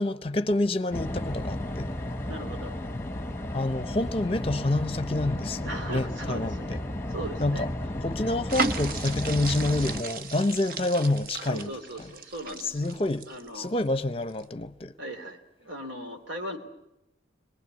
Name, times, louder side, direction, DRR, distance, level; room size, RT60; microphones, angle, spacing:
voice 1, 0.0-1.9 3.5-6.8 7.4-7.7 8.0-11.7 12.0-12.1 12.6-13.3 13.5-14.9, left 2 dB, 30° left, 0.8 m, -28 dB
sound 1, 0.9-10.0, left 1 dB, 15° left, 1.2 m, -33 dB
voice 2, 2.3-2.8 5.6-6.8 7.1-7.7 11.5-12.9 13.3-13.7 15.0-16.6, right 1 dB, 80° right, 3.4 m, -38 dB
sound 2, 8.5-13.9 14.3-14.4, right 4 dB, 50° right, 0.8 m, -35 dB
23.0 x 20.0 x 8.4 m
head